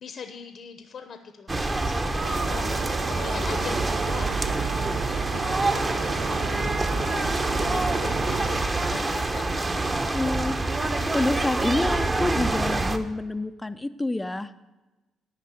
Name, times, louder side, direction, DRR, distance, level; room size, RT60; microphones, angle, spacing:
voice 1, 0.0-10.0, left 6 dB, 60° left, 7 dB, 0.8 m, -41 dB
sound 1, 1.5-13.0, right 2 dB, 25° right, 0.9 m, -26 dB
sound 2, 2.2-8.6, right 5 dB, 90° right, 0.9 m, -35 dB
sound 3, 3.7-8.9, right 4 dB, 60° right, 3.6 m, -34 dB
voice 2, 10.1-10.6 10.9-14.5, left 2 dB, 15° left, 9 dB, 0.4 m, -28 dB
10.5 x 5.4 x 8.3 m, 1.1 s
cardioid pair, 90°, 0 cm